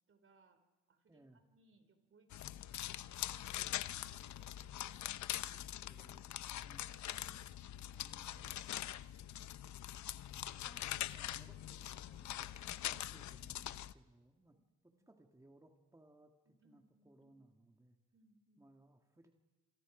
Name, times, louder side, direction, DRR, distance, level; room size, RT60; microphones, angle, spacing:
voice 1, 0.1-0.6 0.9-3.2 3.5-5.7 7.0-7.6 12.6-13.2 14.5-15.3 16.5-17.4 18.1-18.7, right 3 dB, 45° right, 9 dB, 3.5 m, -71 dB
voice 2, 1.1-1.4 5.5-7.0 7.9-8.6 10.3-14.6 14.8-18.0 18.6-19.4, right 1 dB, 10° right, 4 dB, 2.0 m, -65 dB
sound 1, 2.3-13.9, left 12 dB, 70° left, 0.8 m, -43 dB
29.0 x 26.5 x 5.1 m, 1.1 s
cardioid pair, 90°, 30 cm